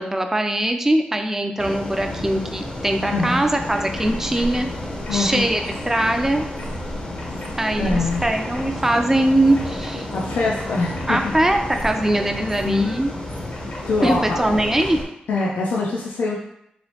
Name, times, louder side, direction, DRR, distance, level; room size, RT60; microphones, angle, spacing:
voice 1, 0.0-4.7 5.1-6.5 7.6-10.1 11.1-13.1 14.0-15.0, right 1 dB, 15° right, 5 dB, 0.4 m, -21 dB
sound 1, 1.6-15.0, left 1 dB, 30° left, 0.6 m, -31 dB
voice 2, 3.1-3.5 5.1-5.5 7.8-8.2 10.1-11.2 12.6-12.9 13.9-14.6 15.3-16.4, left 3 dB, 85° left, -4 dB, 0.5 m, -23 dB
sound 2, 3.7-4.1 4.3-4.6 5.0-6.7 7.2-7.5 7.9-8.6 9.5-9.9 10.5-12.6 13.5-14.8 15.4-15.5, left 2 dB, 55° left, 1.0 m, -40 dB
sound 3, 5.6-10.4 10.7-11.1 11.6-11.9 12.3-12.7 13.0-13.6 13.8-14.2 14.7-15.0, right 3 dB, 65° right, 0.7 m, -43 dB
3.1 x 3.0 x 2.8 m, 0.76 s
cardioid pair, 90°, 3 cm